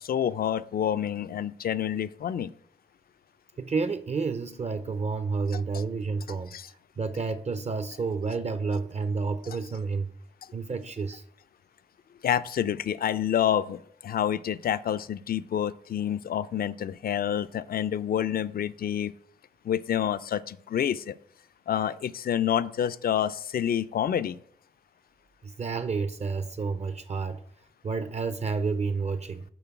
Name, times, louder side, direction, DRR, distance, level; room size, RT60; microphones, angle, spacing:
voice 1, 0.0-2.5 5.5-5.6 6.5-6.7 12.2-19.1 19.6-21.1 21.7-24.4, left 9 dB, 55° left, 0.4 m, -28 dB
voice 2, 3.6-6.6 7.0-10.1 10.5-11.2 25.4-27.4 27.8-29.4, right 4 dB, 40° right, 0.5 m, -30 dB
7.0 x 3.9 x 5.9 m
cardioid pair, 80°, 18 cm